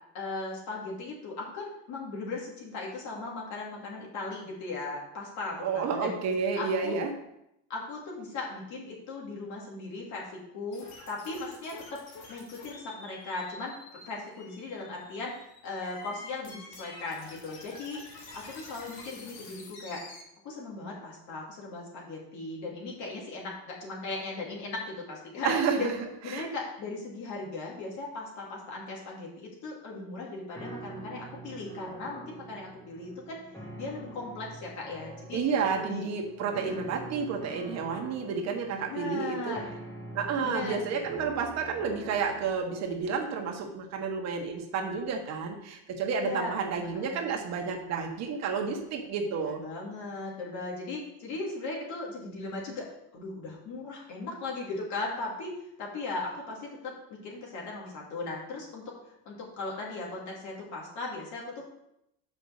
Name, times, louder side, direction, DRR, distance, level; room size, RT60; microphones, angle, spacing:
voice 1, 0.1-6.1 6.6-7.0 7.7-12.0 12.3-18.0 18.3-20.0 20.4-25.9 26.2-33.4 33.8-35.4 35.7-36.1 36.6-36.8 38.9-39.6 40.4-40.8 46.2-47.3 49.3-52.9 53.1-55.5 55.8-58.9 59.2-61.6, left 3 dB, 55° left, -2 dB, 2.7 m, -38 dB
voice 2, 5.6-7.1 25.4-25.9 26.3-26.5 35.3-39.5 40.1-49.6, right 5 dB, 50° right, 3 dB, 1.4 m, -30 dB
sound 1, 10.7-20.2, left 3 dB, 85° left, 2.2 m, -48 dB
sound 2, 30.5-42.5, right 2 dB, 10° left, 1.2 m, -45 dB
5.7 x 5.4 x 6.5 m, 0.82 s
cardioid pair, 145°, 34 cm